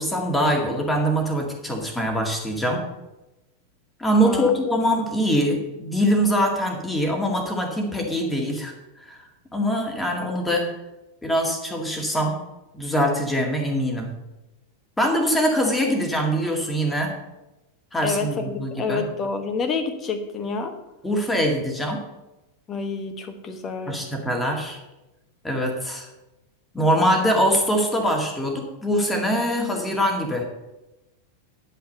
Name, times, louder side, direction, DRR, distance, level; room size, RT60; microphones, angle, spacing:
voice 1, 0.0-2.8 4.0-8.7 9.1-9.2 9.5-10.7 11.2-12.4 12.7-14.1 15.0-17.1 17.9-19.0 21.0-22.0 23.9-24.8 25.4-26.1 26.7-30.5, equal, 5° left, 1 dB, 2.1 m, -23 dB
voice 2, 4.2-4.6 18.0-20.7 22.7-24.1, left 4 dB, 25° left, 7 dB, 1.3 m, -28 dB
10.0 x 5.7 x 6.6 m, 0.99 s
figure-of-eight pair, 90°, 0 cm